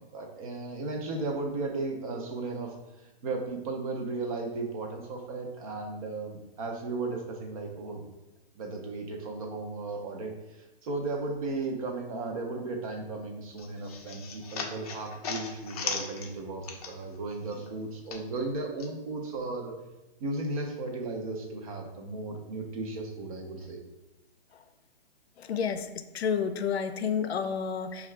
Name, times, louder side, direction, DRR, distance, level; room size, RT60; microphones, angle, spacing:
voice 1, 0.0-2.7 3.2-8.0 8.6-19.7 20.2-23.8, right 3 dB, 35° right, 2 dB, 0.6 m, -35 dB
sound 1, 13.6-17.2 17.5-18.9, left 5 dB, 40° left, 0.5 m, -38 dB
voice 2, 25.4-25.9 26.1-28.1, left 7 dB, 90° left, 9 dB, 0.5 m, -30 dB
5.3 x 2.4 x 3.2 m, 1.0 s
hypercardioid pair, 150°, 31 cm